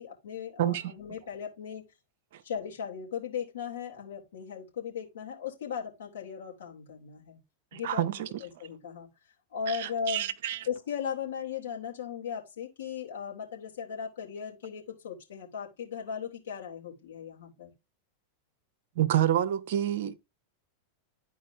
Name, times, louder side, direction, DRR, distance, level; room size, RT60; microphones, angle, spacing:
voice 1, 0.0-1.9 2.4-7.4 7.7-8.0 8.4-9.1 9.5-10.3 10.7-17.7, left 7 dB, 65° left, 3.1 m, -37 dB
voice 2, 0.6-0.9 2.3-2.4 7.7-8.4 9.7-10.7 19.0-20.2, right 11 dB, 55° right, 0.8 m, -28 dB
12.0 x 4.7 x 3.5 m
figure-of-eight pair, 90°, 0 cm